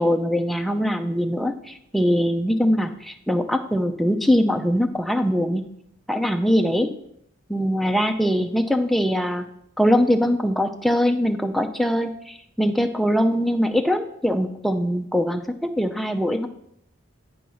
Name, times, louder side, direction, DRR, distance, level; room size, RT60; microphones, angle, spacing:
voice 1, 0.0-5.6 6.1-6.9 7.5-9.5 9.8-16.5, equal, ahead, 5 dB, 0.5 m, -22 dB
9.2 x 4.5 x 5.5 m, 0.75 s
head